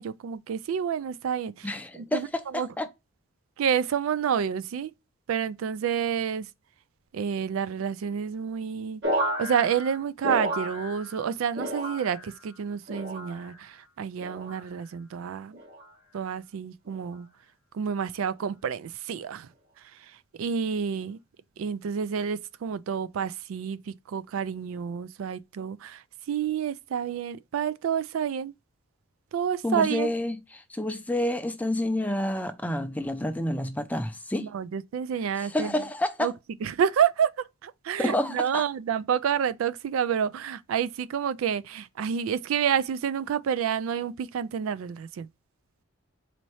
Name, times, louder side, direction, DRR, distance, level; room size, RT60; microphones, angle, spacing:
voice 1, 0.0-2.7 3.6-4.9 5.3-6.5 7.1-9.0 9.4-15.6 16.1-17.3 17.7-19.5 20.0-20.1 20.4-21.2 21.6-28.5 29.3-30.1 34.4-35.7 36.2-36.3 36.6-45.3, right 7 dB, 85° right, 0.3 m, -29 dB
voice 2, 1.6-2.9 29.6-34.5 35.4-36.3 38.0-38.6, left 1 dB, 10° left, 0.5 m, -29 dB
sound 1, 9.0-11.3 11.5-12.4 12.9-13.6 14.2-14.7 15.5-15.9 16.8-17.1, equal, 60° right, 1.2 m, -32 dB
4.2 x 2.7 x 3.0 m
head